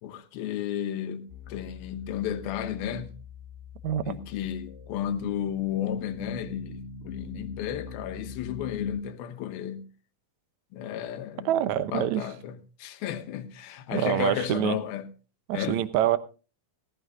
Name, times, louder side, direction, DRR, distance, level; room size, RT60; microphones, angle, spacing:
voice 1, 0.0-3.1 4.0-9.9 10.7-15.1 15.5-15.8, left 10 dB, 85° left, 2.9 m, -33 dB
sound 1, 1.3-9.0, left 5 dB, 70° left, 3.2 m, -41 dB
voice 2, 3.8-4.2 11.4-12.2 13.9-14.8 15.5-16.2, right 12 dB, 75° right, 1.8 m, -25 dB
18.0 x 14.5 x 2.6 m
omnidirectional pair, 4.2 m